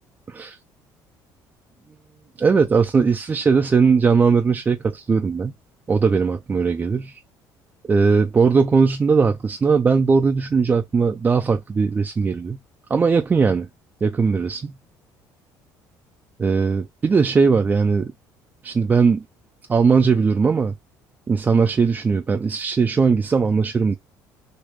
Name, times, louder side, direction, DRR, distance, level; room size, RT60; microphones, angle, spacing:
voice 1, 2.4-5.5 5.9-7.2 7.9-12.6 12.9-13.7 14.0-14.8 16.4-18.1 18.6-19.2 19.7-20.7 21.3-24.0, right 5 dB, 25° right, 0.4 m, -19 dB
3.2 x 2.3 x 3.0 m
cardioid pair, 120°, 7 cm